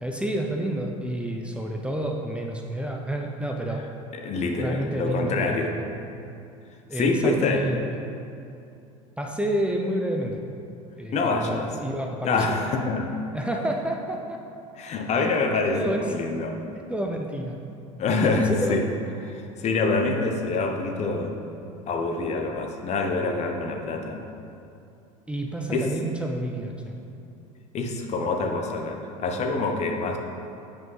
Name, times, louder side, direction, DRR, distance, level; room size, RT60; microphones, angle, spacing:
voice 1, 0.0-3.9 4.6-5.7 6.9-7.8 9.2-10.4 11.0-12.6 13.3-14.4 15.7-16.2 16.9-17.6 18.2-18.8 19.8-19.9 25.3-27.0, right 1 dB, 5° right, 1 dB, 0.6 m, -29 dB
voice 2, 4.1-5.7 6.9-7.6 11.1-11.7 12.2-13.2 14.8-16.6 18.0-18.9 19.2-21.4 21.9-24.2 25.7-25.9 27.7-30.2, left 3 dB, 40° left, 3 dB, 0.9 m, -26 dB
7.3 x 5.1 x 4.0 m, 2.6 s
hypercardioid pair, 85°, 17 cm